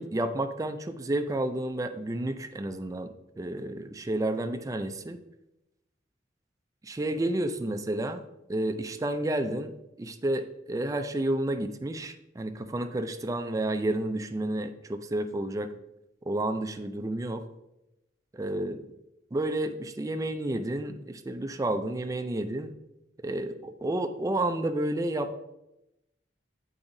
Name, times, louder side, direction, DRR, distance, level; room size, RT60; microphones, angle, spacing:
voice 1, 0.0-5.2 6.8-8.2 8.5-15.7 16.3-17.4 18.3-18.8 19.3-22.7 23.2-25.4, right 1 dB, 20° right, 9 dB, 0.3 m, -31 dB
8.7 x 4.8 x 2.6 m, 0.91 s
head